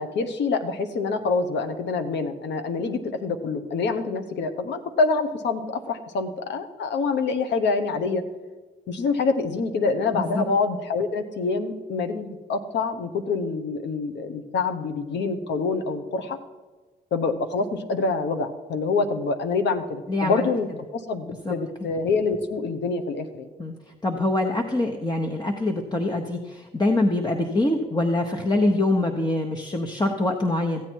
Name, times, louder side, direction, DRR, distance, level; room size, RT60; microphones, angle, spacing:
voice 1, 0.0-8.2 8.9-16.4 17.1-23.5, left 4 dB, 75° left, 8 dB, 1.2 m, -26 dB
voice 2, 10.1-10.5 20.1-20.5 21.3-21.6 23.6-23.7 24.0-30.8, left 2 dB, 20° left, 2 dB, 1.2 m, -24 dB
15.0 x 8.4 x 4.6 m, 1.3 s
supercardioid pair, 65°, 19 cm